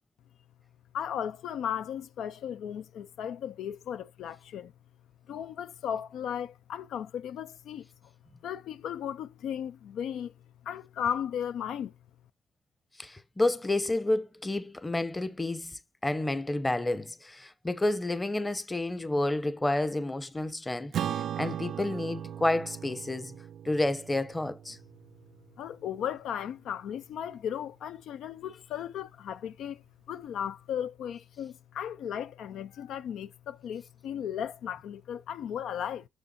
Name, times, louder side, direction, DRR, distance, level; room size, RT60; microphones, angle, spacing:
voice 1, 0.9-4.7 5.3-7.9 8.4-10.3 10.7-11.9 25.6-29.8 30.1-36.1, left 9 dB, 75° left, 0.4 m, -36 dB
voice 2, 13.0-23.4 23.6-24.8, left 2 dB, 15° left, 0.8 m, -30 dB
Acoustic guitar / Strum, 20.9-25.7, right 10 dB, 65° right, 0.4 m, -37 dB
7.0 x 6.3 x 4.2 m
cardioid pair, 90°, 0 cm